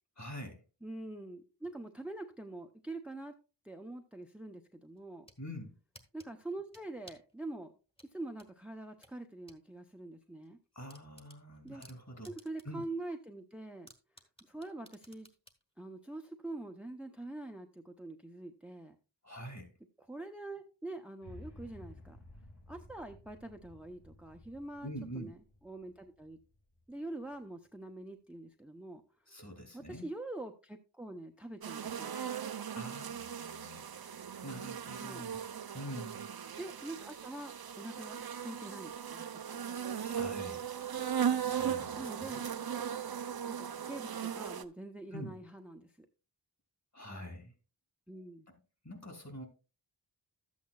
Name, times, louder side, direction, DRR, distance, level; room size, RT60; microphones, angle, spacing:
voice 1, 0.2-0.6 5.4-5.7 10.7-12.3 12.6-12.8 19.2-19.7 24.8-25.3 29.3-30.1 32.7-33.9 34.4-35.4 35.7-36.3 40.0-40.6 41.4-42.4 45.1-45.4 46.9-47.5 48.5-48.6 48.8-49.5, equal, 40° left, 4 dB, 2.9 m, -45 dB
voice 2, 0.8-3.3 3.6-5.3 6.1-7.7 8.1-10.6 11.6-11.8 12.3-13.9 14.5-15.3 15.8-19.0 20.1-22.2 22.7-25.4 25.6-26.4 26.9-29.0 29.7-32.2 35.0-35.3 36.6-39.6 41.6-42.4 43.5-45.9 48.1-48.5, right 2 dB, 5° right, 5 dB, 0.7 m, -45 dB
sound 1, 5.0-5.4 5.9-7.3 8.0-9.6 10.0-10.1 10.5-10.6 10.9-12.8 13.2-13.3 13.9-15.6, equal, 10° left, 1.4 m, -58 dB
sound 2, 21.2-27.4, left 1 dB, 55° left, 2.0 m, -55 dB
sound 3, 31.6-44.6, right 8 dB, 55° right, 0.6 m, -38 dB
12.5 x 8.5 x 2.3 m, 0.33 s
wide cardioid pair, 60°, 45 cm